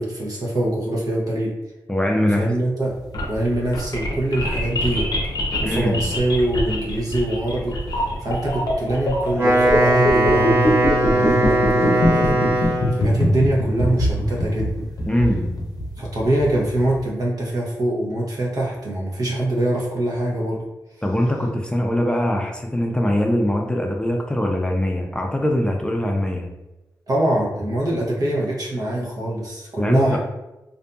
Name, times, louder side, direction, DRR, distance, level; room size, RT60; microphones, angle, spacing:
voice 1, 0.0-1.6 2.4-3.0 3.3-5.1 5.6-7.8 8.2-14.7 16.0-20.6 27.1-30.2, right 1 dB, 60° right, -3 dB, 0.9 m, -23 dB
voice 2, 1.9-2.5 5.6-6.1 15.1-15.5 21.0-26.5 29.8-30.2, left 1 dB, 10° left, 1 dB, 0.4 m, -22 dB
sound 1, 2.9-17.0, left 1 dB, 60° left, 0.6 m, -23 dB
Wind instrument woodwind instrument, 9.2-13.1, right 1 dB, 35° right, 1.3 m, -19 dB
2.6 x 2.5 x 2.3 m, 1.0 s
cardioid pair, 45°, 7 cm